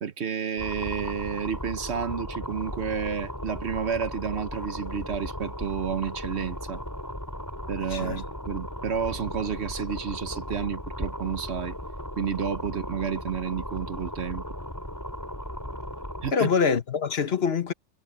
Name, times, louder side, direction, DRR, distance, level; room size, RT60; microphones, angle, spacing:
voice 1, 0.0-6.8 7.7-11.8 12.2-14.4 16.2-16.5, right 7 dB, 65° right, 1.3 m, -31 dB
sound 1, 0.6-16.3, equal, 15° left, 4.9 m, -36 dB
voice 2, 7.9-8.2 16.3-17.7, left 6 dB, 60° left, 1.2 m, -25 dB
omnidirectional pair, 1.2 m